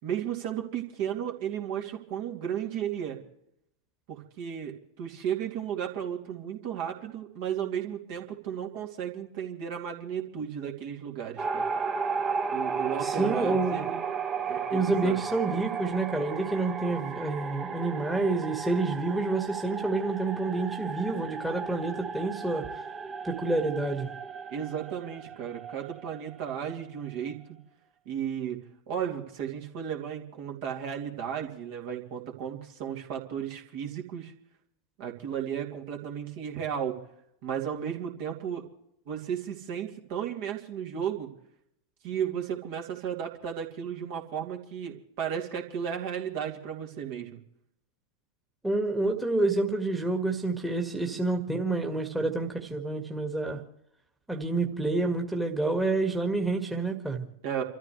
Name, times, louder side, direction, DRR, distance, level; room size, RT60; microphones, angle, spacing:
voice 1, 0.0-3.2 4.1-11.7 12.5-14.0 14.5-15.2 24.5-27.4 28.0-34.3 35.0-37.0 37.4-38.6 39.1-41.3 42.0-47.4 57.4-57.6, right 9 dB, 50° right, 1 dB, 2.7 m, -34 dB
sound 1, 11.4-27.3, right 5 dB, 25° right, 1.5 m, -35 dB
voice 2, 13.0-13.9 14.7-22.7 23.2-24.1 48.6-53.6 54.3-57.3, right 3 dB, 5° right, 2 dB, 1.9 m, -28 dB
29.5 x 14.0 x 3.3 m, 0.78 s
figure-of-eight pair, 90°, 0 cm